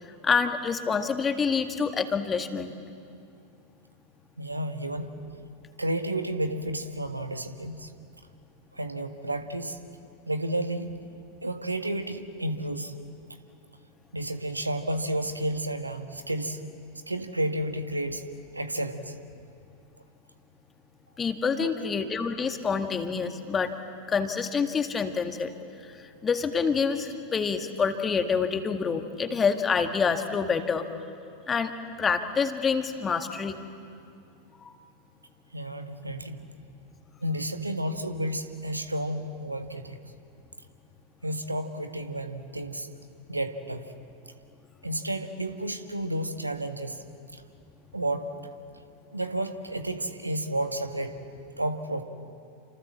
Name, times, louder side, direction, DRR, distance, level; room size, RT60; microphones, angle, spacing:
voice 1, 0.2-2.7 21.2-23.7 24.1-25.5 25.9-30.9 31.5-31.7 32.0-33.6 34.6-34.7, left 5 dB, 20° left, 7 dB, 1.9 m, -27 dB
voice 2, 4.4-5.1 5.8-7.9 8.7-9.8 10.3-11.0 11.4-12.9 14.1-16.6 17.1-18.3 18.5-19.2 21.6-21.7 35.5-36.4 37.2-40.0 41.2-42.9 43.3-43.9 44.8-47.0 47.3-47.4 47.9-48.3 49.1-51.2 51.6-52.0, right 1 dB, 85° right, 8 dB, 1.6 m, -31 dB
29.5 x 27.0 x 7.5 m, 2.5 s
figure-of-eight pair, 90°, 0 cm